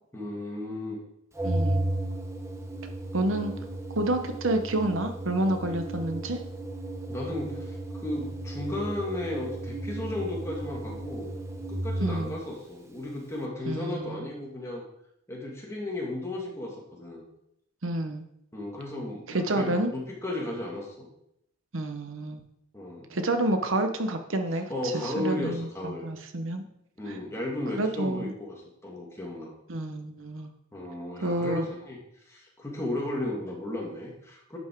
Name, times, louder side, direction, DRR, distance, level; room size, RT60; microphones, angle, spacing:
voice 1, 0.1-1.0 3.3-3.5 7.1-7.8 8.0-11.3 11.7-14.8 15.3-17.2 18.5-21.1 22.7-23.1 24.7-26.1 27.0-28.6 28.8-29.5 30.7-32.0 32.3-34.6, left 1 dB, 15° left, -2 dB, 2.1 m, -34 dB
Organ, 1.4-12.4, right 1 dB, 15° right, 0.8 m, -34 dB
voice 2, 1.4-1.9 3.1-3.5 4.0-6.4 12.0-12.3 13.7-14.2 17.8-18.2 19.3-19.9 21.7-22.4 23.1-26.6 27.1-27.2 27.7-28.3 29.7-30.5 31.2-31.6, right 1 dB, 75° right, 7 dB, 0.9 m, -29 dB
10.5 x 5.4 x 4.6 m, 0.77 s
head